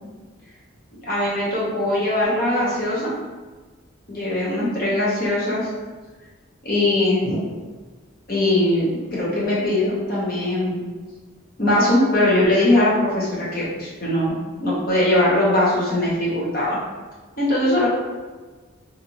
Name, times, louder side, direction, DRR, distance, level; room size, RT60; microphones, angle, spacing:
voice 1, 1.1-3.1 4.1-5.7 6.6-7.4 8.3-10.8 11.6-14.3 14.6-16.8 17.4-17.9, left 1 dB, 45° left, -6 dB, 0.8 m, -20 dB
2.6 x 2.4 x 2.8 m, 1.3 s
head